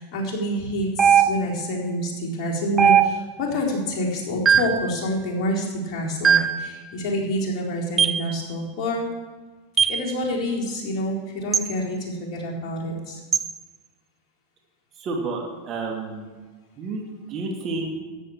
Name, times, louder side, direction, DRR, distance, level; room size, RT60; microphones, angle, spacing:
voice 1, 0.0-9.1 9.9-13.2, equal, 50° left, -2 dB, 4.1 m, -27 dB
sound 1, 1.0-1.7 2.8-3.5 4.4-4.9 6.2-6.7 8.0-8.3 9.8-10.0 11.5-11.7 13.3-13.5, right 7 dB, 25° right, 0.5 m, -19 dB
voice 2, 15.0-16.3 16.8-17.0 17.3-17.9, right 3 dB, 40° right, 1 dB, 2.4 m, -30 dB
14.0 x 8.3 x 7.3 m, 1.3 s
hypercardioid pair, 105°, 0 cm